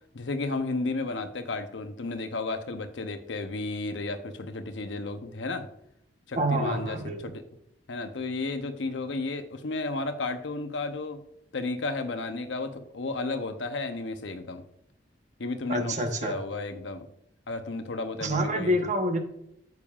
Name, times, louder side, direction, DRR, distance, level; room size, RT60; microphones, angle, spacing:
voice 1, 0.1-5.7 6.3-7.0 7.2-7.4 7.9-11.2 11.5-14.6 15.4-17.1 17.5-18.7, left 3 dB, 75° left, 8 dB, 0.8 m, -33 dB
voice 2, 6.4-7.2 15.7-16.3 18.2-19.2, equal, 40° right, 4 dB, 1.1 m, -27 dB
9.5 x 7.1 x 2.4 m, 0.76 s
head